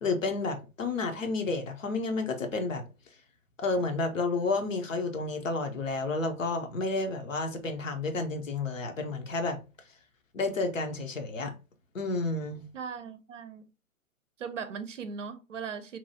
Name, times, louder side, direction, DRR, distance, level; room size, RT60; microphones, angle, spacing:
voice 1, 0.0-2.8 3.6-9.6 10.3-11.5 11.9-12.6, left 3 dB, 65° left, 0.8 m, -31 dB
voice 2, 12.7-13.6 14.4-16.0, right 6 dB, 60° right, 0.6 m, -38 dB
2.9 x 2.3 x 2.7 m
figure-of-eight pair, 130°, 42 cm